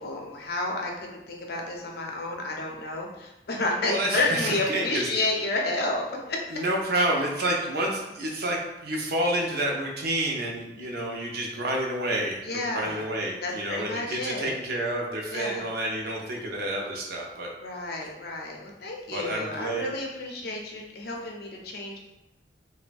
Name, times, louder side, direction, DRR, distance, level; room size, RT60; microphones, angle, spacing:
voice 1, 0.0-6.4 12.4-13.0 13.4-14.5 15.3-15.6 17.6-22.0, left 2 dB, 60° left, 0 dB, 0.5 m, -30 dB
voice 2, 3.8-5.1 6.5-17.5 19.1-19.9, right 1 dB, 60° right, 0 dB, 0.5 m, -29 dB
3.1 x 2.1 x 2.5 m, 0.93 s
head